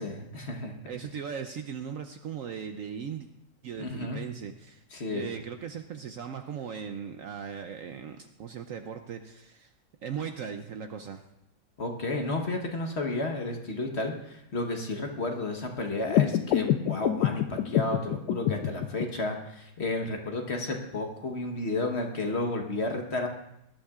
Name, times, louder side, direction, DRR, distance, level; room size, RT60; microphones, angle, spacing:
voice 1, 0.0-0.8 3.8-4.2 4.9-5.3 11.8-23.3, left 2 dB, 45° left, 3 dB, 1.3 m, -32 dB
voice 2, 0.8-3.3 3.6-4.8 5.1-9.7 10.0-11.2, right 7 dB, 65° right, 7 dB, 0.9 m, -38 dB
sound 1, 16.1-19.0, left 11 dB, 80° left, 1.2 m, -27 dB
19.0 x 11.5 x 2.4 m, 0.81 s
omnidirectional pair, 1.8 m